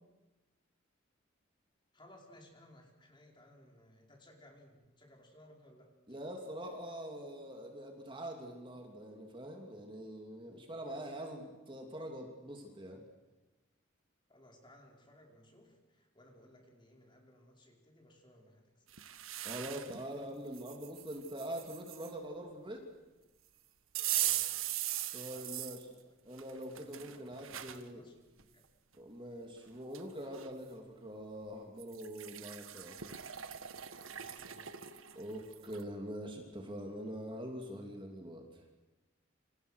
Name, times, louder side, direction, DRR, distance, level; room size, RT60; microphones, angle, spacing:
voice 1, 1.9-6.2 14.3-18.8 24.1-24.9 25.3-26.2 26.7-28.7 34.1-34.9, left 1 dB, 25° left, 1 dB, 5.0 m, -61 dB
voice 2, 6.1-13.0 19.4-22.8 25.1-25.9 26.2-28.0 28.9-33.0 35.1-38.6, equal, 25° right, 2 dB, 3.0 m, -44 dB
sound 1, 18.9-20.0 20.5-22.1 24.0-25.8 26.4-27.8 28.4-28.5 29.6-29.7 29.9-30.5 31.8-35.8, right 13 dB, 85° right, 1.5 m, -40 dB
29.0 x 27.5 x 6.6 m, 1.1 s
head